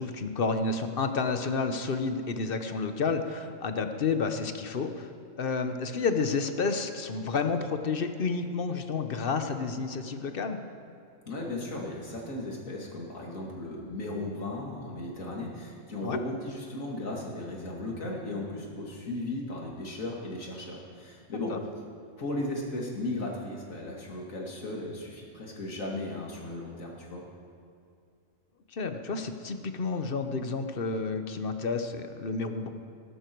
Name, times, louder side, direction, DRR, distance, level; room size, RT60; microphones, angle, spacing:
voice 1, 0.0-10.6 16.0-16.2 21.5-21.6 28.7-32.7, left 4 dB, 50° left, 8 dB, 1.1 m, -30 dB
voice 2, 11.3-21.5 22.2-27.2, left 2 dB, 90° left, -2 dB, 2.8 m, -36 dB
19.5 x 11.5 x 4.6 m, 2.5 s
omnidirectional pair, 1.4 m